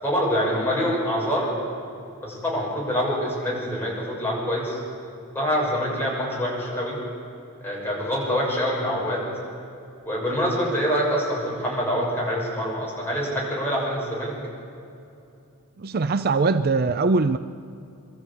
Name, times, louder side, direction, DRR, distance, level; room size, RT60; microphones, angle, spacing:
voice 1, 0.0-1.5 2.2-4.8 5.3-7.0 7.6-9.2 10.0-14.3, equal, 10° left, -5 dB, 6.6 m, -25 dB
voice 2, 15.8-17.4, right 3 dB, 45° right, 11 dB, 0.5 m, -21 dB
24.0 x 13.5 x 8.7 m, 2.6 s
head